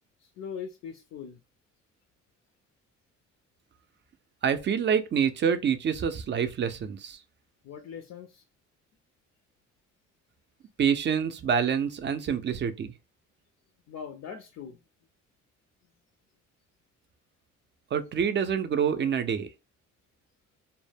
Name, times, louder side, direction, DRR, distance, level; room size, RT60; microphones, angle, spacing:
voice 1, 0.2-1.4 7.6-8.4 13.9-14.8, left 7 dB, 60° left, 0.4 m, -41 dB
voice 2, 4.4-7.2 10.8-12.9 17.9-19.5, right 7 dB, 40° right, 0.4 m, -26 dB
2.1 x 2.0 x 3.3 m
cardioid pair, 90°, 30 cm